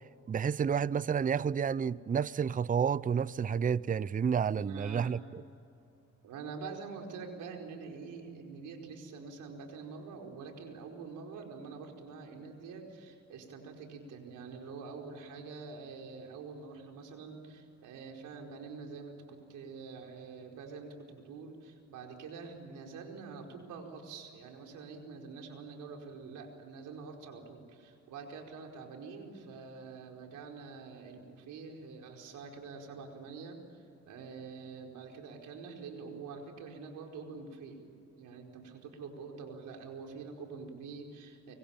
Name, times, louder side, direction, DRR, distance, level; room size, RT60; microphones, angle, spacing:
voice 1, 0.3-5.4, right 7 dB, 25° right, 0.5 m, -30 dB
voice 2, 4.5-5.1 6.2-37.8 38.2-41.5, right 4 dB, 80° right, 4.8 m, -46 dB
24.5 x 24.0 x 8.9 m
cardioid pair, 90°, 30 cm